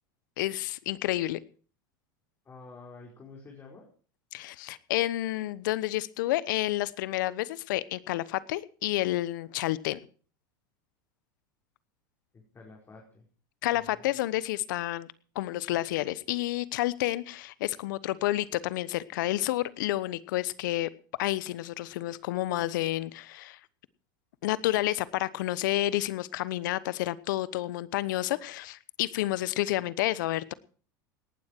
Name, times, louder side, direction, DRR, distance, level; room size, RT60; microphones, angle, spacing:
voice 1, 0.4-1.4 4.3-10.0 13.6-15.1 15.3-20.9 21.2-23.6 24.4-30.5, left 16 dB, 70° left, 19 dB, 1.0 m, -30 dB
voice 2, 2.4-3.9 12.3-13.2 13.7-14.2, left 3 dB, 25° left, -1 dB, 4.9 m, -49 dB
18.5 x 12.0 x 4.6 m, 0.41 s
hypercardioid pair, 100°, 11 cm